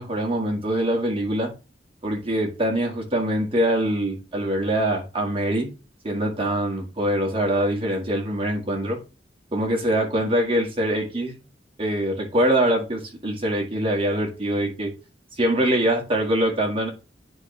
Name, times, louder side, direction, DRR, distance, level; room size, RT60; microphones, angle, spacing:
voice 1, 0.0-1.5 2.0-5.7 6.0-9.0 9.5-11.4 11.8-14.9 15.4-16.9, right 1 dB, 30° right, 1.9 m, -23 dB
9.8 x 3.6 x 3.3 m
head